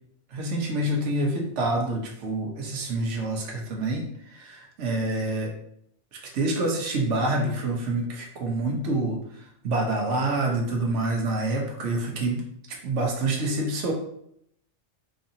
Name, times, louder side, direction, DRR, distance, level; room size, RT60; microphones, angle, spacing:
voice 1, 0.3-4.1 4.3-5.5 6.1-9.2 9.6-13.9, right 2 dB, 85° right, 1 dB, 1.1 m, -27 dB
4.0 x 2.7 x 2.6 m, 0.72 s
omnidirectional pair, 1.2 m